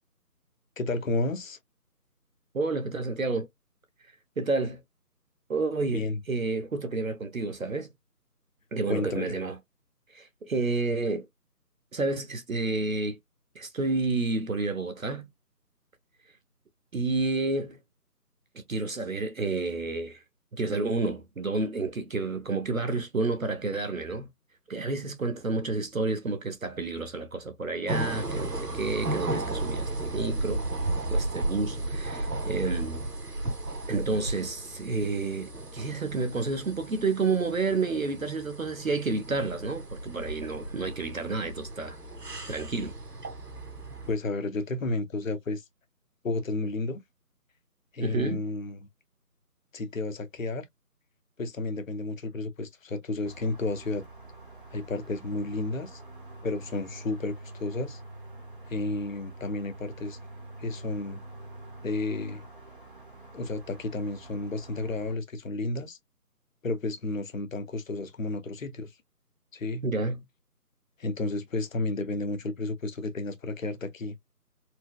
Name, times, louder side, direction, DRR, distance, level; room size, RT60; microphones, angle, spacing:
voice 1, 0.8-1.6 5.9-6.2 8.9-9.4 44.1-45.6 46.2-47.0 47.9-48.9 49.7-50.6 51.4-54.0 54.7-56.0 56.4-58.0 58.7-60.2 60.6-61.2 61.8-62.4 63.3-66.0 66.6-68.9 69.5-69.8 71.0-74.1, left 2 dB, 55° left, 0.7 m, -32 dB
voice 2, 2.5-3.5 4.4-4.8 5.5-7.9 8.7-9.6 10.1-11.3 11.9-13.2 13.5-15.3 16.9-17.8 18.5-20.2 20.5-24.3 24.7-30.6 31.1-33.1 33.9-42.0 42.5-42.9 48.0-48.4 69.8-70.2, right 3 dB, 60° right, 0.8 m, -30 dB
sound 1, 27.9-44.1, right 2 dB, 80° right, 1.9 m, -34 dB
sound 2, 53.2-65.2, right 2 dB, 35° right, 1.0 m, -46 dB
4.4 x 2.0 x 2.2 m
figure-of-eight pair, 165°, 47 cm